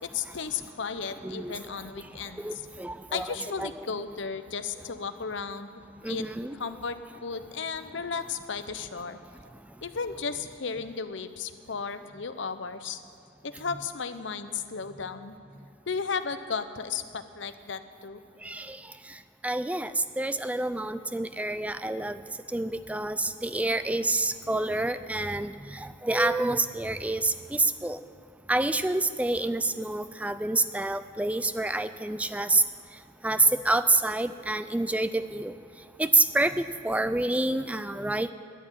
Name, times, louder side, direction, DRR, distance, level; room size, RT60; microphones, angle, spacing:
voice 1, 0.0-2.6 3.1-5.7 6.1-6.2 6.6-9.2 9.8-13.0 13.4-15.4 15.9-18.2, left 5 dB, 70° left, 10 dB, 0.8 m, -34 dB
voice 2, 2.4-3.3 3.6-3.7 6.0-6.5 18.4-18.8 19.4-22.2 22.5-28.0 28.5-32.6 33.2-35.5 36.0-36.5 36.8-38.3, right 2 dB, 5° right, 12 dB, 0.3 m, -27 dB
13.0 x 9.7 x 9.0 m, 2.2 s
head